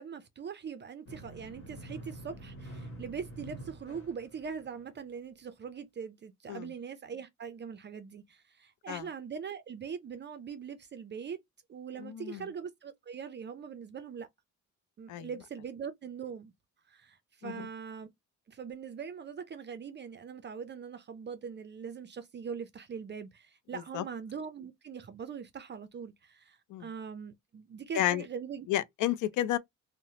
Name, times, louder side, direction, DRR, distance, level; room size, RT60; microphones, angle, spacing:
voice 1, 0.0-11.4 11.7-14.3 15.0-16.5 16.9-18.1 18.5-28.7, right 6 dB, 35° right, 0.4 m, -42 dB
sound 1, 1.1-5.0, right 1 dB, 45° left, 1.1 m, -47 dB
voice 2, 12.0-12.4 15.1-15.3 17.4-17.7 23.7-24.0 26.7-26.9 27.9-28.2 28.7-29.6, left 13 dB, 80° left, 0.5 m, -31 dB
2.9 x 2.0 x 2.7 m
cardioid pair, 90°, 30 cm